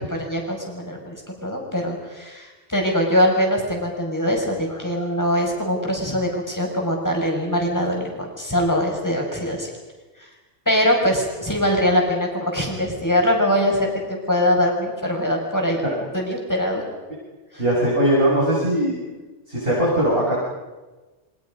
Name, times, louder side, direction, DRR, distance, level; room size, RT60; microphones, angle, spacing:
voice 1, 0.0-9.7 10.2-10.3 10.7-15.8 16.1-16.8 17.5-17.6, equal, 15° left, 0 dB, 5.7 m, -22 dB
voice 2, 17.6-19.0 19.5-20.4, right 1 dB, 50° right, -6 dB, 7.6 m, -20 dB
29.5 x 25.5 x 5.3 m, 1.2 s
omnidirectional pair, 1.2 m